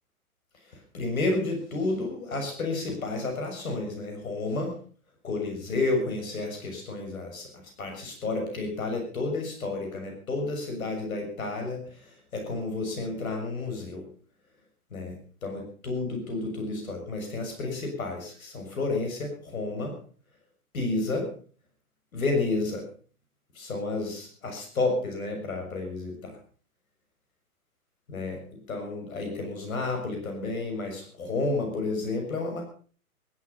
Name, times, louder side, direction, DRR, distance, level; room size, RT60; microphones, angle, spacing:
voice 1, 0.9-4.7 5.2-7.5 7.8-14.0 14.9-15.1 15.4-19.9 20.7-21.3 22.1-22.9 23.5-26.4 28.1-28.4 28.7-32.6, left 3 dB, 65° left, 3 dB, 6.8 m, -31 dB
17.0 x 13.5 x 5.6 m, 0.42 s
hypercardioid pair, 135°, 45 cm